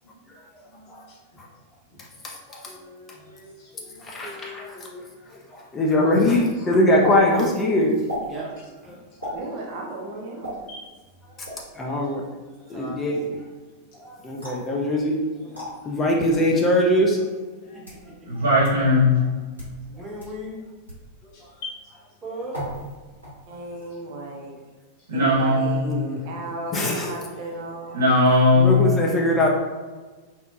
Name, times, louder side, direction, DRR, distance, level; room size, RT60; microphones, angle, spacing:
voice 1, 0.6-1.2 1.9-2.0 2.7-5.3 6.6-6.7 8.8-9.4 10.7-10.9 11.9-12.2 12.6-12.9 15.2-15.4 16.3-16.4 21.3-21.8, left 3 dB, 50° left, -5 dB, 1.0 m, -44 dB
voice 2, 2.2-2.6 4.0-4.8 5.5-7.9 9.2-9.3 11.8-12.2 12.7-13.2 14.0-15.2 15.9-17.2 25.8-26.2 26.7-27.1 28.5-29.5, left 1 dB, 20° left, -2 dB, 0.4 m, -22 dB
sound 1, 7.0-7.1 8.0-8.3 9.2-9.4 10.4-10.6 11.4-11.7 14.4-14.7 15.5-15.7 16.6-16.7 17.6-18.0 18.6-18.7 19.4-19.7 20.2-20.3 20.9-21.0 22.5-22.9 23.2-23.6, equal, 90° left, 1.2 m, -34 dB
voice 3, 9.3-10.6 23.5-24.5 25.1-28.1, right 2 dB, 45° right, -1 dB, 0.4 m, -35 dB
voice 4, 12.7-13.1 15.4-15.6 19.9-20.6 22.2-22.6, right 1 dB, 25° right, -5 dB, 0.9 m, -36 dB
voice 5, 18.3-19.1 25.1-25.9 27.9-28.8, left 2 dB, 70° right, -4 dB, 0.8 m, -18 dB
2.8 x 2.1 x 2.3 m, 1.3 s
figure-of-eight pair, 90°, 0 cm